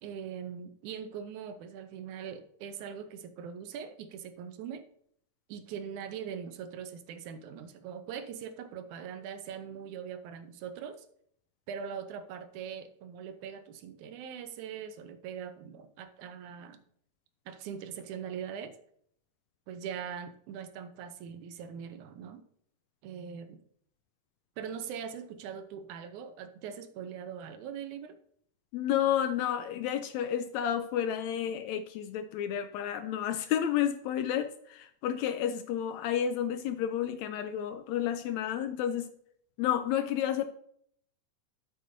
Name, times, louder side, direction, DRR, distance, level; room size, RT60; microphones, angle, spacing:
voice 1, 0.0-4.8 5.5-11.1 11.7-16.8 17.5-18.8 19.7-22.4 23.0-23.6 24.6-28.2, right 7 dB, 80° right, 9 dB, 2.1 m, -41 dB
voice 2, 28.7-39.1 39.6-40.4, left 10 dB, 80° left, 9 dB, 1.7 m, -31 dB
13.0 x 6.6 x 2.6 m, 0.66 s
omnidirectional pair, 3.6 m